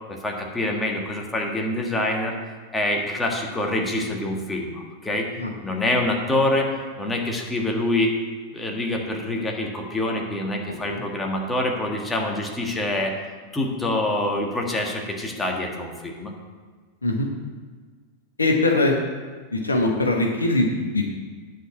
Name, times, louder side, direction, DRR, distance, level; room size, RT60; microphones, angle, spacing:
voice 1, 0.1-2.3 2.7-5.3 5.6-6.7 7.0-8.1 8.5-13.1 13.5-16.3, left 1 dB, 10° left, 0 dB, 1.7 m, -25 dB
voice 2, 10.7-11.0 17.0-17.3 18.4-19.0 19.5-21.1, left 2 dB, 80° left, 2 dB, 1.3 m, -22 dB
10.0 x 5.1 x 7.7 m, 1.5 s
figure-of-eight pair, 90°, 0 cm